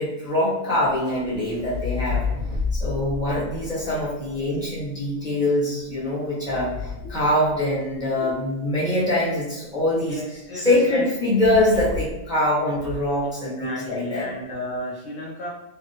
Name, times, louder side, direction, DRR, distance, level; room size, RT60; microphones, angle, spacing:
voice 1, 0.0-2.2 2.7-10.2 10.5-14.3, left 1 dB, 5° right, -8 dB, 0.9 m, -23 dB
sound 1, 0.7-4.8 5.8-8.1 11.4-12.3 12.7-13.2, left 4 dB, 30° right, 1.0 m, -32 dB
voice 2, 10.0-11.1 13.6-15.5, equal, 65° left, -5 dB, 0.8 m, -33 dB
3.3 x 2.2 x 2.8 m, 0.93 s
omnidirectional pair, 1.3 m